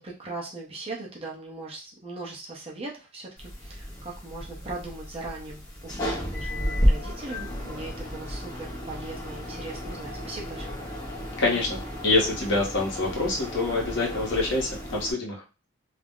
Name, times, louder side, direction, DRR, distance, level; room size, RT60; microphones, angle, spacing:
voice 1, 0.0-10.8, right 2 dB, 25° right, -3 dB, 0.6 m, -39 dB
sound 1, 3.4-15.1, equal, 15° left, 0.8 m, -32 dB
voice 2, 11.4-15.4, left 2 dB, 55° left, -2 dB, 0.9 m, -26 dB
2.4 x 2.0 x 3.6 m, 0.31 s
head